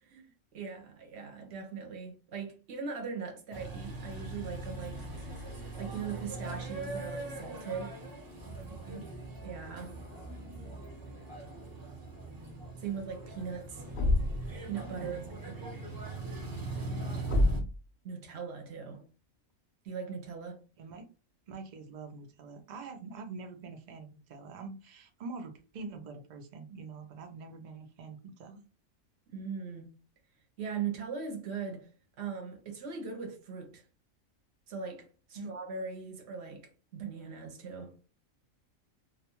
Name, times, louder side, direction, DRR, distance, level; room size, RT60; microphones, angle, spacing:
voice 1, 0.0-5.0 5.8-8.0 9.4-9.9 12.8-13.8 14.7-15.6 18.0-19.1 19.8-20.6 29.3-30.0 30.6-31.9 32.2-33.8 34.7-38.0, right 6 dB, 60° right, 0.8 m, -40 dB
sound 1, 3.5-17.6, right 2 dB, 25° right, 0.5 m, -41 dB
voice 2, 8.7-9.1 15.0-15.3 20.8-21.1 21.5-28.6 35.3-35.5, right 4 dB, 85° right, 0.4 m, -45 dB
Thump thud, 13.9-14.6 17.3-17.8, left 1 dB, 60° left, 0.6 m, -27 dB
2.4 x 2.2 x 2.8 m
omnidirectional pair, 1.4 m